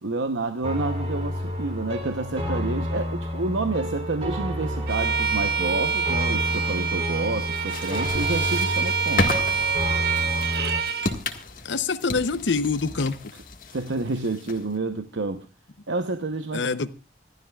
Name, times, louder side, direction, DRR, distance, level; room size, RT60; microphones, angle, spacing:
voice 1, 0.0-9.4 13.7-15.5 15.9-16.6, right 3 dB, 90° right, 0.9 m, -29 dB
sound 1, 0.6-10.8, left 1 dB, 35° right, 3.3 m, -30 dB
Bowed string instrument, 4.9-11.1, right 6 dB, 55° right, 1.2 m, -26 dB
sound 2, 7.5-14.8, left 2 dB, 45° left, 1.7 m, -33 dB
voice 2, 11.6-13.2 16.5-16.9, left 4 dB, 85° left, 0.8 m, -25 dB
26.0 x 12.5 x 2.4 m
head